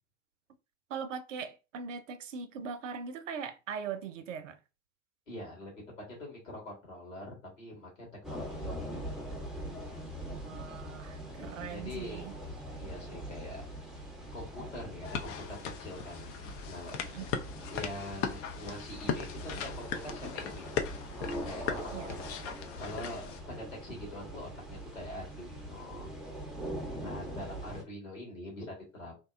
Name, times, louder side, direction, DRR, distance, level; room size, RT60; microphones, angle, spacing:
voice 1, 0.9-4.6 10.3-12.4 17.0-17.3 21.9-22.1, right 6 dB, 75° right, 0.5 m, -40 dB
voice 2, 5.3-9.4 11.7-12.2 12.8-13.6 14.3-16.3 16.7-17.0 17.7-20.7 21.4-22.2 22.8-26.1 27.0-29.1, left 1 dB, 80° left, 1.5 m, -44 dB
sound 1, 8.2-27.8, right 1 dB, ahead, 0.7 m, -42 dB
sound 2, 15.0-23.4, left 7 dB, 40° left, 0.4 m, -38 dB
2.8 x 2.1 x 2.3 m
figure-of-eight pair, 70°, 38 cm